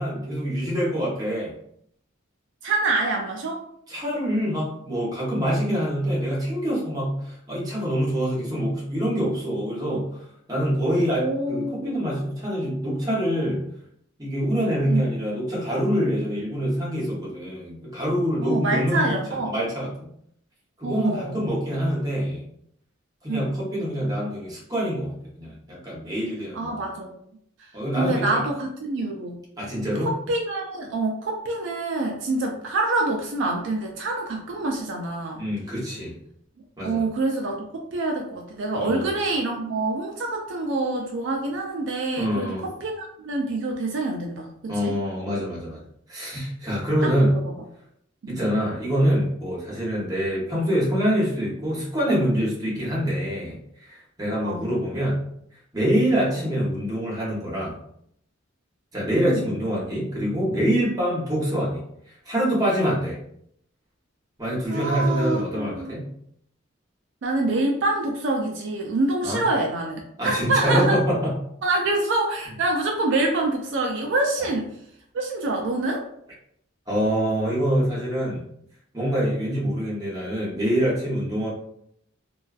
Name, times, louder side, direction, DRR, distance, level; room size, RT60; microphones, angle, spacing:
voice 1, 0.0-1.5 3.9-10.2 10.5-13.6 14.2-19.1 19.5-20.1 20.8-22.4 23.2-26.8 27.7-28.4 29.6-30.1 35.4-36.2 36.8-37.0 38.7-39.1 42.2-42.6 44.7-45.8 46.1-47.3 48.3-55.2 55.7-57.8 58.9-61.8 62.1-63.2 64.4-66.0 69.2-69.4 70.2-71.3 76.9-78.4 78.9-81.5, equal, 20° right, -6 dB, 0.9 m, -25 dB
voice 2, 2.6-3.6 5.7-5.8 11.1-12.0 14.8-15.1 18.4-19.5 20.8-21.4 23.3-23.5 26.5-27.1 27.6-27.7 28.0-29.4 30.0-35.4 36.8-45.0 47.0-47.4 48.2-48.4 54.4-54.7 59.2-59.5 64.7-65.9 67.2-71.0 71.6-74.7 75.1-76.0, right 2 dB, 65° right, 1 dB, 0.4 m, -26 dB
2.4 x 2.2 x 2.3 m, 0.71 s
head